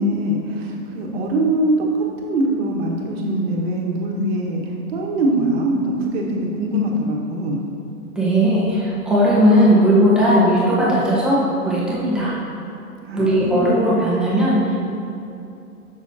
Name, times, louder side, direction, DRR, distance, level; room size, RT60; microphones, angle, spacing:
voice 1, 0.0-1.8 2.2-7.6 13.1-13.7, right 1 dB, 40° right, -1 dB, 1.5 m, -22 dB
voice 2, 8.1-12.4 13.1-14.8, equal, ahead, -8 dB, 1.2 m, -17 dB
14.5 x 6.2 x 2.8 m, 2.7 s
hypercardioid pair, 145°, 46 cm